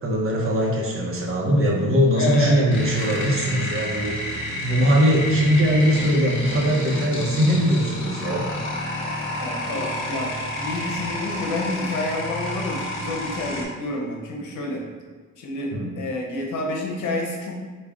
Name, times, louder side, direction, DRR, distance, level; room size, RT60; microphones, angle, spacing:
voice 1, 0.0-8.4 15.7-15.9, equal, 45° right, -1 dB, 0.8 m, -21 dB
voice 2, 2.1-2.7 9.4-14.8 15.4-17.5, left 2 dB, 80° left, 0 dB, 0.8 m, -29 dB
sound 1, 2.7-13.6, left 1 dB, 40° left, 1.0 m, -30 dB
3.5 x 2.3 x 3.5 m, 1.5 s
cardioid pair, 90°, 30 cm